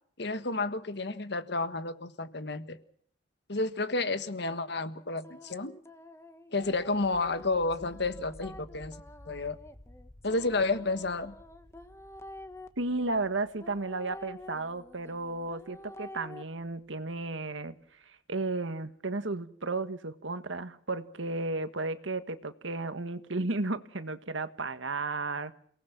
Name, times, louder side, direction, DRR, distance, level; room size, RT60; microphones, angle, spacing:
voice 1, 0.2-2.8 3.5-5.8 6.5-9.0 9.3-9.6 10.2-11.3, left 3 dB, 65° left, 11 dB, 1.6 m, -31 dB
sound 1, 4.5-12.7 13.6-16.4, left 1 dB, 15° left, 1.3 m, -48 dB
sound 2, 6.6-17.3, left 1 dB, 45° left, 4.3 m, -55 dB
voice 2, 12.8-17.8 18.1-25.5, right 3 dB, 90° right, 11 dB, 1.7 m, -33 dB
29.0 x 18.5 x 6.0 m, 0.62 s
head